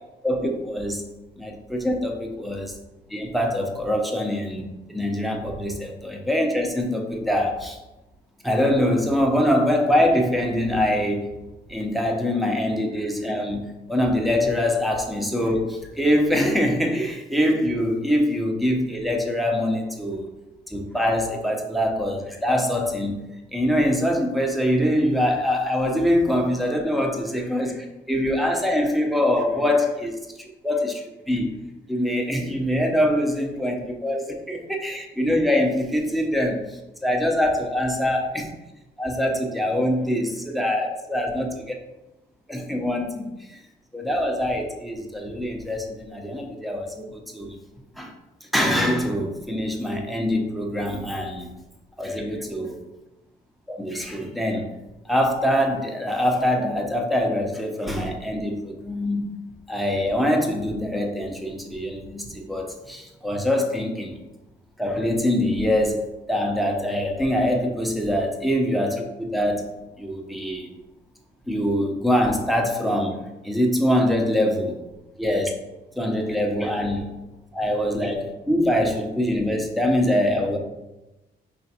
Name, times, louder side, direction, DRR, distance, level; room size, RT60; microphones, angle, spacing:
voice 1, 0.2-1.0 1.4-2.8 3.1-7.8 8.4-11.3 11.7-13.6 13.9-20.3 20.7-23.3 23.5-31.5 31.9-38.5 39.0-41.5 42.5-43.6 43.9-47.6 48.0-48.1 48.4-51.5 52.0-52.7 53.7-54.7 55.0-59.3 59.7-64.2 64.8-69.7 70.0-70.7 71.5-74.8 75.2-75.5 76.0-77.0 77.5-80.6, left 1 dB, ahead, 1 dB, 0.7 m, -24 dB
4.9 x 3.1 x 2.8 m, 1.0 s
cardioid pair, 90°, 20 cm